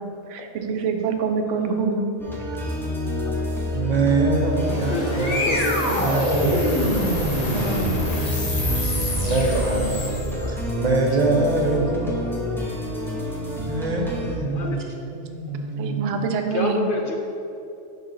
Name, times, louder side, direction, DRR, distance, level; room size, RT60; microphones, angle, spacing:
voice 1, 0.0-2.1 7.5-8.0 15.8-16.9, right 5 dB, 85° right, 5 dB, 0.9 m, -26 dB
sound 1, 2.2-14.3, left 1 dB, ahead, 0.6 m, -29 dB
voice 2, 3.7-5.6 6.0-7.4 8.6-8.8 9.2-10.1 10.5-12.3 13.6-16.3, right 3 dB, 45° right, 0 dB, 0.6 m, -24 dB
sound 2, 4.3-10.6, left 1 dB, 35° left, 0.9 m, -25 dB
voice 3, 4.9-6.4 7.5-7.6 10.4-10.5 14.5-14.8 16.5-17.1, left 2 dB, 55° left, 1 dB, 0.7 m, -29 dB
5.8 x 5.4 x 3.8 m, 2.8 s
omnidirectional pair, 1.2 m